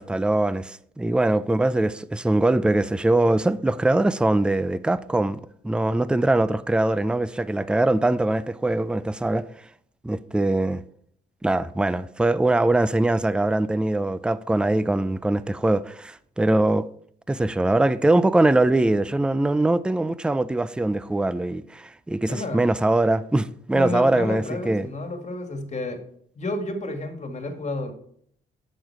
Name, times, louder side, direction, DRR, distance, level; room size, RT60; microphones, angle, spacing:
voice 1, 0.0-9.5 10.0-10.8 11.4-16.9 17.3-24.9, right 2 dB, 5° right, 0.4 m, -22 dB
voice 2, 22.3-22.6 23.7-26.0 26.4-27.9, left 2 dB, 35° left, 1.9 m, -31 dB
8.8 x 6.4 x 4.7 m
cardioid pair, 90°, 20 cm